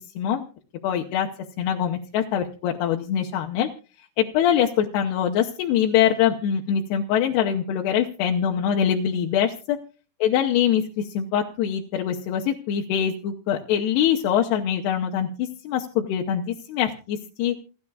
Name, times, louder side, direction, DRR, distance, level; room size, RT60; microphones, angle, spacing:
voice 1, 0.8-1.3 1.6-3.7 4.2-9.8 10.2-17.5, left 9 dB, 75° left, 1 dB, 2.8 m, -23 dB
28.5 x 9.6 x 2.4 m, 0.37 s
omnidirectional pair, 5.1 m